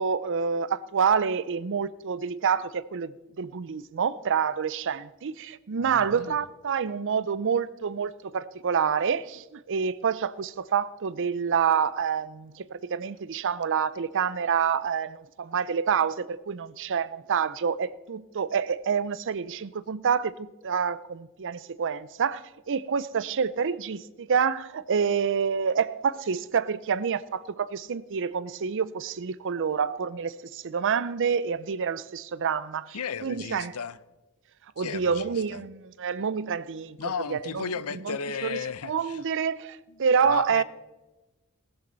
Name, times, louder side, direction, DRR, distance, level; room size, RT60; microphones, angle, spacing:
voice 1, 0.0-3.1 3.4-33.0 33.2-33.8 34.8-37.0 37.3-37.7 38.0-38.2 38.4-38.6 38.9-40.6, right 6 dB, 55° right, 0.5 m, -27 dB
voice 2, 5.8-6.4 32.9-34.0 34.8-35.6 37.0-39.2 40.0-40.6, left 6 dB, 75° left, 0.7 m, -35 dB
19.0 x 13.0 x 4.0 m
head